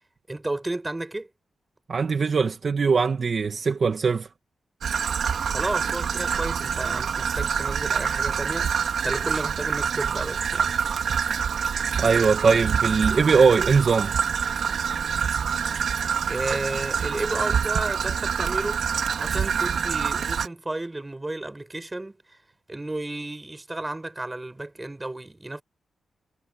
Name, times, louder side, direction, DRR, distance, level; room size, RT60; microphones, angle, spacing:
voice 1, 0.3-1.3 5.5-8.7 9.0-10.7 16.3-18.8 19.2-22.2 22.7-25.6, right 2 dB, 20° right, 5.6 m, -32 dB
voice 2, 1.9-4.3 12.0-14.1, right 5 dB, 55° right, 2.4 m, -21 dB
Traffic noise roadway noise / Trickle dribble, 4.8-20.5, right 7 dB, 75° right, 3.8 m, -26 dB
cardioid pair, 85°, 0 cm